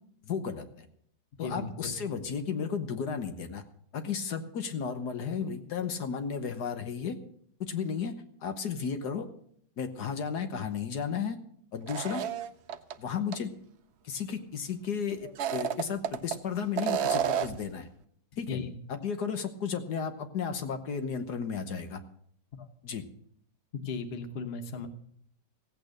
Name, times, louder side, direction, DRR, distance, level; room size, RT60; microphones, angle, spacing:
voice 1, 0.2-0.9 1.4-3.6 3.9-7.2 7.6-9.3 9.8-11.4 11.7-12.2 13.0-13.5 14.0-17.9 18.4-18.6 18.9-22.0 22.8-23.0, left 6 dB, 70° left, 8 dB, 1.6 m, -34 dB
voice 2, 1.4-2.0 18.5-18.7 22.5-22.7 23.8-24.9, left 5 dB, 40° left, 7 dB, 1.2 m, -36 dB
sound 1, 11.9-12.9 13.3-13.4 15.2-16.4 16.8-17.7, right 9 dB, 70° right, 0.6 m, -30 dB
16.0 x 8.7 x 6.5 m, 0.65 s
omnidirectional pair, 1.9 m